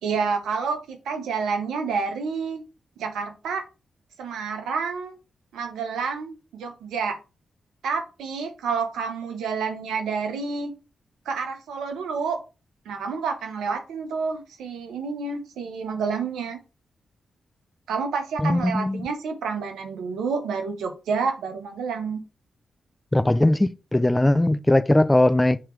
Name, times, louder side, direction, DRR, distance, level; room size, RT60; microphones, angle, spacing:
voice 1, 0.0-2.6 3.0-3.7 4.2-5.2 5.5-7.2 7.8-10.7 11.2-12.4 12.8-16.6 17.9-22.2, right 5 dB, 85° right, 1.0 m, -29 dB
voice 2, 18.4-19.1 23.1-25.6, left 1 dB, 15° left, 0.4 m, -20 dB
7.3 x 3.0 x 4.5 m
supercardioid pair, 45°, 0 cm